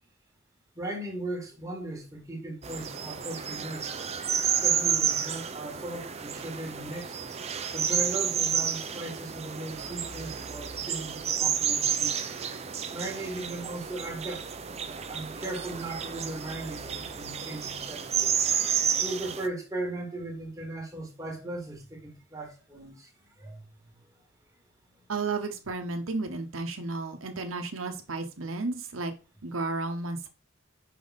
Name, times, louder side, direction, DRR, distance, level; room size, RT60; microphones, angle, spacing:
voice 1, 0.7-3.9 4.6-7.2 7.7-12.2 12.9-14.5 14.8-18.3 19.0-23.1 23.4-24.0, right 2 dB, 15° right, 1.5 m, -38 dB
sound 1, 2.6-19.5, right 8 dB, 30° right, 0.5 m, -31 dB
voice 2, 25.1-29.1 29.4-30.3, right 3 dB, 90° right, 0.9 m, -33 dB
5.2 x 4.7 x 4.0 m
head